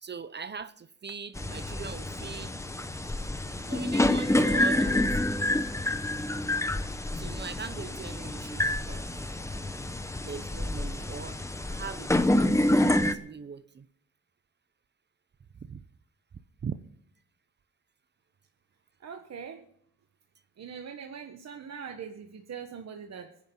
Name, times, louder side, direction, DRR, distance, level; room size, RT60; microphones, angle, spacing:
voice 1, 0.0-2.6 3.7-5.1 7.1-9.1 10.2-11.4 11.7-13.9 15.5-15.8 16.6-16.8, right 6 dB, 35° right, 0.7 m, -41 dB
sound 1, 1.3-13.1, left 1 dB, 10° left, 1.1 m, -28 dB
voice 2, 19.0-19.6 20.6-23.4, right 7 dB, 55° right, 1.3 m, -42 dB
22.0 x 10.0 x 3.9 m
cardioid pair, 105°, 31 cm